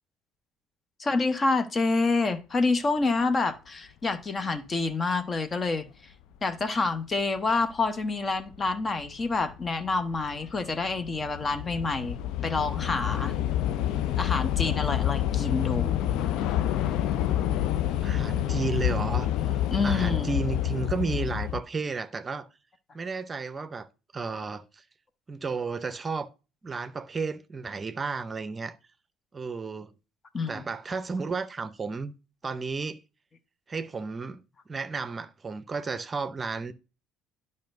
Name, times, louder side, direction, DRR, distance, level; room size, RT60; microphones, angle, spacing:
voice 1, 1.0-6.1 6.4-13.3 14.2-16.0 19.7-20.3 30.3-30.6, left 3 dB, 35° left, 0.9 m, -28 dB
Train / Subway metro underground, 7.6-7.7 8.5-8.8 9.0-21.6, left 12 dB, 65° left, 0.4 m, -28 dB
voice 2, 18.0-22.5 22.9-23.9 24.1-24.8 25.3-26.3 26.6-28.8 29.3-29.9 30.5-32.1 32.4-33.0 33.7-34.4 34.7-36.7, right 4 dB, 30° right, 0.6 m, -33 dB
10.5 x 5.3 x 2.6 m
hypercardioid pair, 65°, 0 cm